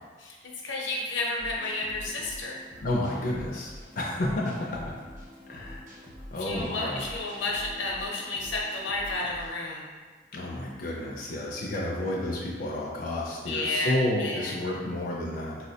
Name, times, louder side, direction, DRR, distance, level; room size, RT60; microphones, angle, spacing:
voice 1, 0.6-2.6 6.4-9.8 13.4-14.5, left 2 dB, 85° left, -2 dB, 0.6 m, -31 dB
sound 1, 1.4-9.6, equal, 40° right, 0.8 m, -46 dB
voice 2, 2.8-4.8 5.5-5.8 6.3-7.0 10.3-15.6, left 1 dB, 50° left, -3 dB, 0.4 m, -30 dB
4.2 x 2.0 x 2.7 m, 1.4 s
head